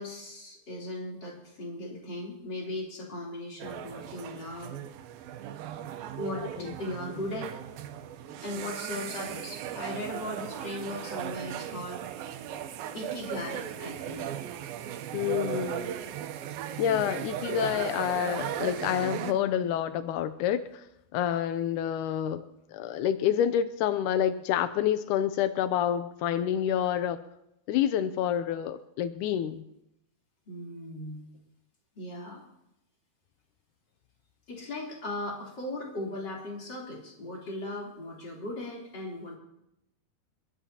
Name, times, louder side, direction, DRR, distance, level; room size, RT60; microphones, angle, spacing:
voice 1, 0.0-4.7 6.2-7.5 8.4-12.0 12.9-14.3 30.5-31.2 32.0-32.4 34.5-39.3, left 1 dB, 30° left, -3 dB, 3.7 m, -38 dB
sound 1, 3.6-19.3, right 10 dB, 80° right, 2.6 m, -37 dB
voice 2, 15.1-16.0 16.8-20.8 21.1-22.4 22.7-27.2 27.7-29.6, left 10 dB, 85° left, 11 dB, 1.7 m, -28 dB
29.5 x 12.5 x 2.8 m, 0.85 s
omnidirectional pair, 4.3 m